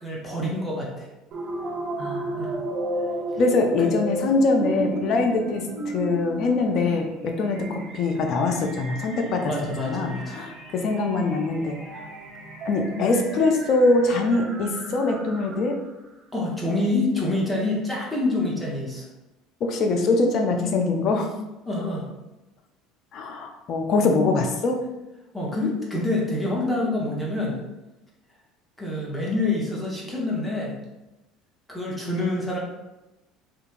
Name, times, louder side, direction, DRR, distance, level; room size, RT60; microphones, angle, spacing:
voice 1, 0.0-1.1 2.4-2.5 3.8-3.9 9.5-10.3 16.3-19.1 21.7-22.1 25.3-27.6 28.8-30.7 31.7-32.6, left 2 dB, 10° left, -4 dB, 0.7 m, -26 dB
sound 1, 1.3-15.9, right 2 dB, 40° right, 0.6 m, -34 dB
voice 2, 2.0-2.6 3.4-5.6 5.9-9.5 9.8-11.8 12.7-15.8 19.6-21.3 23.1-24.8, left 3 dB, 55° left, 4 dB, 0.4 m, -23 dB
2.8 x 2.1 x 2.5 m, 1.0 s
hypercardioid pair, 75°, 0 cm